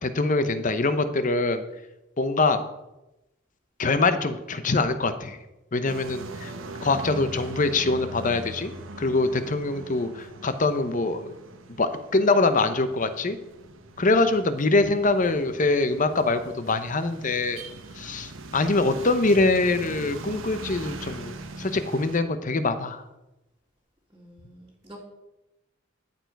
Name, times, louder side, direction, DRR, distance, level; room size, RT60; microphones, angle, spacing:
voice 1, 0.0-1.6 2.2-2.6 3.8-5.4 5.7-6.5 6.8-8.7 9.0-11.3 11.8-13.4 14.0-17.6 18.0-23.0, left 3 dB, 40° left, 10 dB, 0.8 m, -24 dB
sound 1, 5.9-22.2, right 2 dB, 80° right, 1.0 m, -41 dB
voice 2, 6.4-7.0 9.8-10.1 14.4-15.1 24.1-25.0, equal, 15° right, -6 dB, 2.2 m, -48 dB
13.0 x 7.1 x 4.6 m, 0.96 s
head